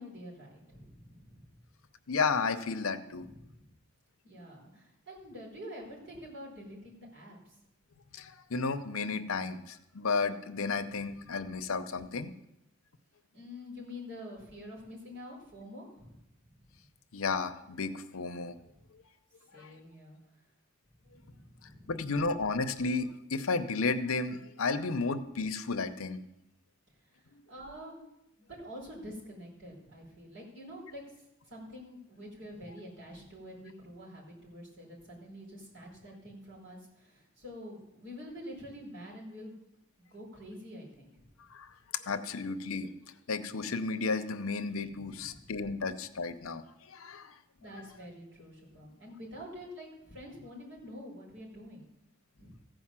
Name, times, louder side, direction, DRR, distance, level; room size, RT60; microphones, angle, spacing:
voice 1, 0.0-1.6 3.1-3.7 4.2-7.6 10.9-11.3 13.3-16.7 18.7-18.8 19.5-20.2 21.1-22.0 27.0-28.0 28.4-39.5 40.0-41.1 44.7-45.5 47.6-51.8 52.3-52.5, equal, 60° right, -4 dB, 4.7 m, -47 dB
voice 2, 2.1-3.3 8.1-12.3 17.1-18.6 19.5-19.7 21.9-26.2 41.5-41.7 42.1-42.9 43.3-46.6 46.9-47.3, left 4 dB, 80° left, 10 dB, 0.7 m, -33 dB
15.5 x 5.1 x 7.4 m, 0.86 s
head